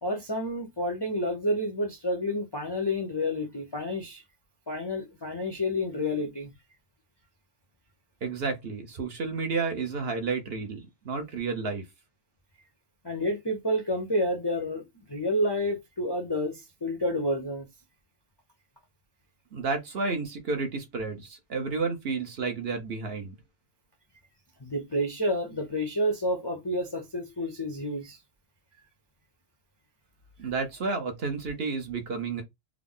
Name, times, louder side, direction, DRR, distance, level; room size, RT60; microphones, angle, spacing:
voice 1, 0.0-4.2 4.7-6.5 13.0-14.8 15.1-17.6 24.6-28.2, left 1 dB, 30° left, 0.5 m, -29 dB
voice 2, 8.2-11.8 19.5-23.4 30.4-32.4, right 4 dB, 55° right, 0.9 m, -31 dB
3.6 x 2.0 x 3.6 m
omnidirectional pair, 1.3 m